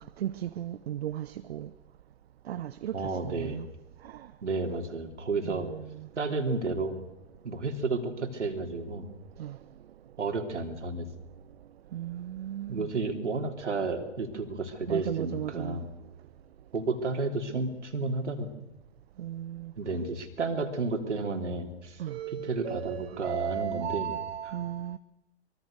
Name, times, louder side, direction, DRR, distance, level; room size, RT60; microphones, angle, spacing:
voice 1, 0.0-1.7 2.4-3.7 4.0-4.3 5.4-6.1 9.4-9.6 11.9-12.9 14.9-15.9 19.2-19.7 22.0-25.0, right 11 dB, 60° right, 0.9 m, -36 dB
voice 2, 2.9-3.6 4.4-5.7 6.2-7.0 7.4-9.1 10.2-11.1 12.7-15.9 16.7-18.5 19.8-22.0 22.3-24.1, right 3 dB, 80° right, 3.6 m, -32 dB
24.0 x 24.0 x 6.6 m
figure-of-eight pair, 110°, 35 cm